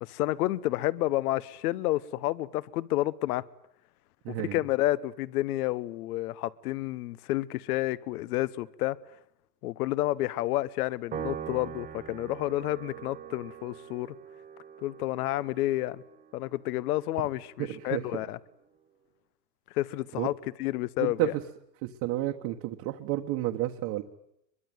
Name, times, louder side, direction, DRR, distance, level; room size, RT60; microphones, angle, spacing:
voice 1, 0.0-3.4 4.3-9.0 9.6-14.1 14.8-16.0 16.3-18.4 19.7-20.3 20.6-21.3, left 16 dB, 65° left, 1.1 m, -30 dB
voice 2, 4.2-4.6 17.6-18.0 20.2-20.3 21.0-21.4 21.8-24.0, right 15 dB, 40° right, 1.6 m, -31 dB
Piano, 11.1-17.7, right 9 dB, 15° right, 1.0 m, -43 dB
23.0 x 22.5 x 9.3 m
supercardioid pair, 150°, 49 cm